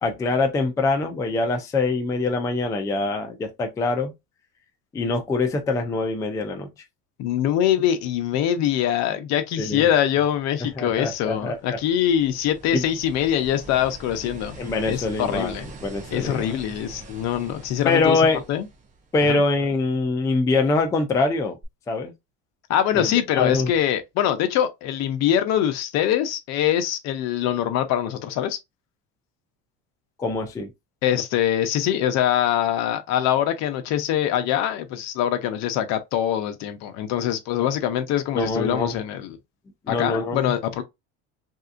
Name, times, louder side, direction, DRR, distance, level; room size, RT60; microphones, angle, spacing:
voice 1, 0.0-4.1 4.9-6.7 9.6-9.9 10.8-11.6 12.7-12.8 14.6-15.6 15.8-16.5 17.9-18.4 19.1-21.6 21.9-22.1 22.9-23.1 23.3-23.7 30.2-30.7 38.3-38.9 39.9-40.5, left 3 dB, 10° left, 0.4 m, -24 dB
voice 2, 7.2-14.5 14.9-15.7 16.1-18.2 18.5-18.7 19.2-19.4 22.7-28.6 31.0-39.4 39.9-40.8, left 10 dB, 55° left, 0.7 m, -23 dB
sound 1, 11.0-19.5 21.6-21.7, right 3 dB, 25° right, 0.7 m, -43 dB
3.3 x 2.7 x 2.5 m
cardioid pair, 150°, 32 cm